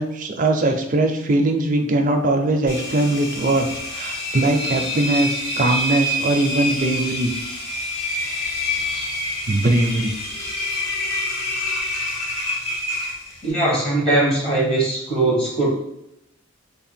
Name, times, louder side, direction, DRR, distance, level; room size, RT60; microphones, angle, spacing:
voice 1, 0.0-7.3 9.5-10.1, right 2 dB, 40° right, 4 dB, 0.4 m, -21 dB
Engine, 2.7-13.5, left 1 dB, 65° left, 1.1 m, -27 dB
voice 2, 13.4-15.7, right 2 dB, 30° left, -4 dB, 1.0 m, -20 dB
3.4 x 2.2 x 4.3 m, 0.81 s
head